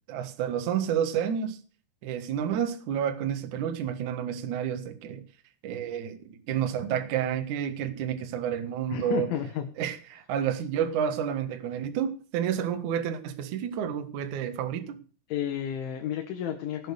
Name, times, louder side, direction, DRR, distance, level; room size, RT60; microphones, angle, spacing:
voice 1, 0.1-1.6 2.0-5.2 5.6-9.3 9.8-15.0, right 9 dB, 70° right, 1.9 m, -30 dB
voice 2, 8.9-9.7 15.3-16.9, left 10 dB, 70° left, 3.7 m, -31 dB
18.0 x 7.7 x 6.5 m
omnidirectional pair, 5.9 m